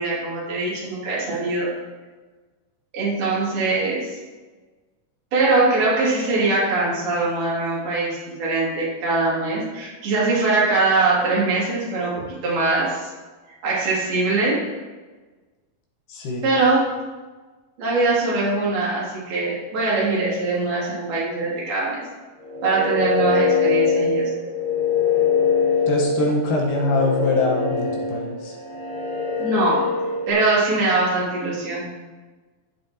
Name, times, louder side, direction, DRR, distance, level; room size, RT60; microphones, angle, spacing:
voice 1, 0.0-1.7 2.9-4.2 5.3-13.1 13.6-14.7 16.4-17.0 17.8-22.0 22.6-24.3 29.4-29.9 30.3-31.9, right 3 dB, 85° right, -6 dB, 4.8 m, -22 dB
voice 2, 16.1-16.5 25.9-28.6, left 2 dB, 70° left, -2 dB, 3.0 m, -23 dB
sound 1, 22.4-30.3, left 4 dB, 15° right, 1.8 m, -23 dB
16.0 x 7.4 x 3.0 m, 1.3 s
omnidirectional pair, 4.2 m